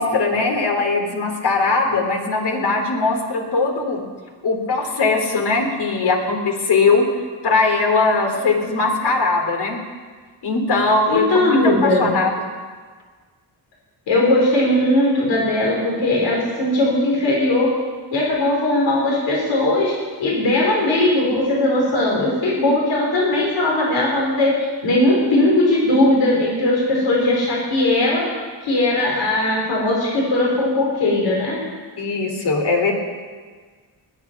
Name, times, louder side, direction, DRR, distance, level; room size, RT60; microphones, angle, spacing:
voice 1, 0.0-4.0 4.4-7.1 7.4-9.8 10.4-12.3 32.0-32.9, left 3 dB, 65° left, 2 dB, 3.2 m, -20 dB
voice 2, 11.1-12.2 14.1-17.7 18.1-19.9 20.2-28.2 28.6-31.6, left 1 dB, 85° left, -4 dB, 4.3 m, -19 dB
20.5 x 8.6 x 5.9 m, 1.5 s
cardioid pair, 75°, 43 cm